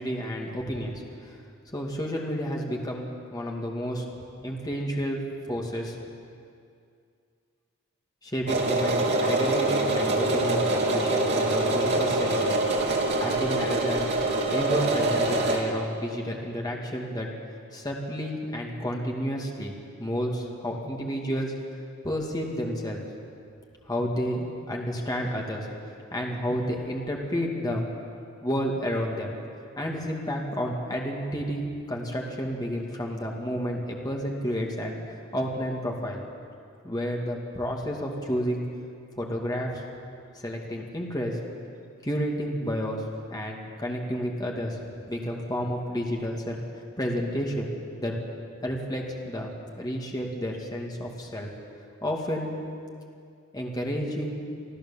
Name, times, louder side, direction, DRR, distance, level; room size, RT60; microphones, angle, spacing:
voice 1, 0.0-1.4 1.7-4.0 4.4-5.2 5.5-6.0 8.2-12.6 13.2-14.1 14.5-17.3 17.7-19.7 20.0-21.5 22.0-23.0 23.9-25.7 26.1-27.9 28.4-29.3 29.8-35.0 35.3-36.2 36.8-38.6 39.2-39.7 40.4-41.4 42.0-43.0 43.3-44.8 45.1-46.6 47.0-47.7 48.0-48.1 48.6-49.5 49.8-51.5 52.0-52.5 53.5-54.4, equal, 20° left, -1 dB, 2.4 m, -31 dB
sound 1, 8.5-15.6, right 2 dB, 55° right, 2.8 m, -24 dB
25.0 x 14.0 x 7.4 m, 2.3 s
head